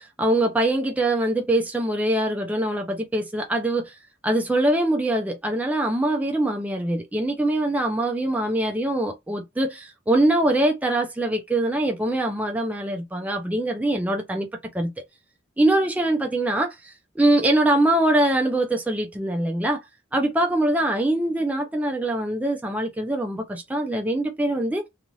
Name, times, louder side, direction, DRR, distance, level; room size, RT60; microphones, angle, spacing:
voice 1, 0.0-14.5 14.7-14.9 15.6-19.8 20.1-24.9, right 1 dB, 10° right, 0.4 m, -23 dB
2.6 x 2.4 x 3.0 m
head